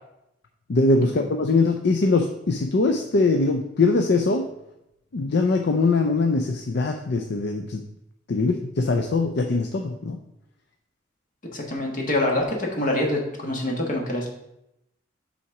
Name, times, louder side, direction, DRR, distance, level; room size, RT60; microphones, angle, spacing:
voice 1, 0.7-4.4 5.1-7.8 8.3-10.2, left 3 dB, 60° left, 5 dB, 0.5 m, -22 dB
voice 2, 11.5-14.3, left 1 dB, 45° left, -1 dB, 1.5 m, -25 dB
5.7 x 4.3 x 5.8 m, 0.84 s
head